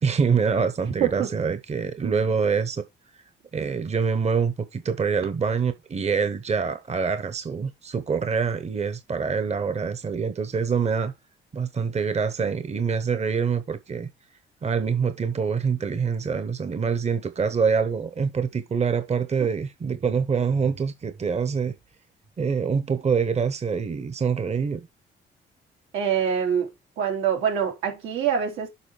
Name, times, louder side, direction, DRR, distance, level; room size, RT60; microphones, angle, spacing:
voice 1, 0.0-2.8 3.5-11.1 11.5-14.1 14.6-21.7 22.4-24.8, right 5 dB, 35° right, 1.0 m, -25 dB
voice 2, 25.9-26.7 27.0-28.7, right 8 dB, 90° right, 3.0 m, -25 dB
7.0 x 4.9 x 4.8 m
cardioid pair, 90°, 20 cm